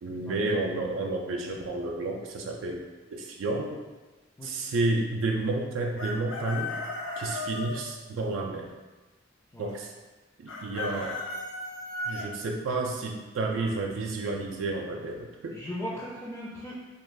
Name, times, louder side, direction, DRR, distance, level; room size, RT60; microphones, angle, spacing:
voice 1, 0.0-3.8 4.4-6.8 7.2-8.7 9.6-9.9 10.4-11.2 12.1-15.6, right 2 dB, 75° right, 1 dB, 0.3 m, -31 dB
Chicken rooster, 6.0-7.8 10.5-12.3, left 2 dB, 75° left, 0.4 m, -35 dB
voice 2, 15.5-16.8, equal, 15° left, -6 dB, 0.4 m, -37 dB
2.5 x 2.2 x 3.2 m, 1.2 s
head